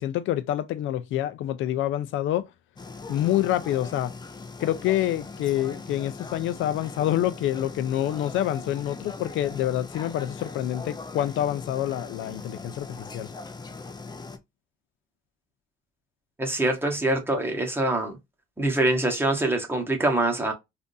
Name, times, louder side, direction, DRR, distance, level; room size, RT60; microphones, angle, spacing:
voice 1, 0.0-2.5 3.1-4.1 4.6-13.3, left 12 dB, 80° left, 0.4 m, -27 dB
sound 1, 2.8-14.4, left 3 dB, 20° left, 0.6 m, -40 dB
voice 2, 16.4-18.2 18.6-20.5, right 2 dB, 10° right, 1.2 m, -24 dB
3.6 x 2.6 x 2.6 m
cardioid pair, 90°, 20 cm